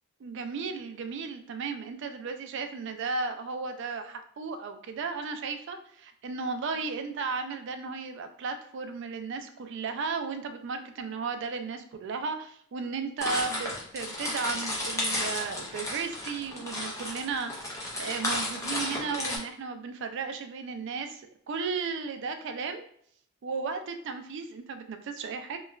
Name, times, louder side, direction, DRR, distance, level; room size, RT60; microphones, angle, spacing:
voice 1, 0.2-22.8 23.4-25.6, right 4 dB, 55° right, 8 dB, 0.3 m, -35 dB
sound 1, 13.2-19.4, left 1 dB, 15° left, 0.5 m, -33 dB
3.0 x 2.2 x 2.3 m, 0.65 s
head